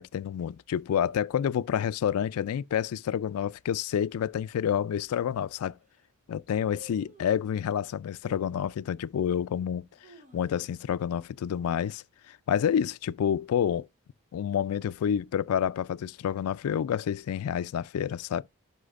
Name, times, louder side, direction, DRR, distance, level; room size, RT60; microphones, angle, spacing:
voice 1, 0.0-5.7 6.3-9.8 10.3-13.9 14.3-18.4, left 8 dB, 80° left, 0.3 m, -29 dB
sound 1, 4.7-4.8 5.4-5.5 5.7-6.1 6.7-7.5 8.2-8.6 9.1-9.2 9.8-10.9 11.2-11.3 11.6-12.0 12.4-12.8 13.4-14.2 14.4-14.5, equal, 35° right, 0.8 m, -54 dB
11.5 x 4.9 x 2.4 m
head